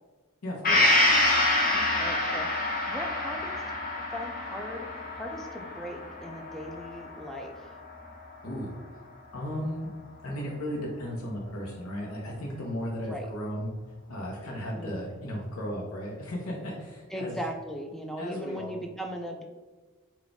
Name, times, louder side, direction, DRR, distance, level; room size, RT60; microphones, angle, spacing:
voice 1, 0.4-0.9 8.4-8.8 9.3-9.9 10.2-13.7 14.1-17.4 18.2-18.7, equal, 75° left, -2 dB, 0.7 m, -35 dB
Gong, 0.6-8.3 8.7-8.8, left 2 dB, 40° left, 0.7 m, -27 dB
voice 2, 1.7-3.5 4.0-4.9 5.2-7.5 13.0-13.3 14.8-15.1 17.1-19.4, equal, ahead, 2 dB, 0.3 m, -38 dB
3.9 x 2.3 x 3.5 m, 1.3 s
head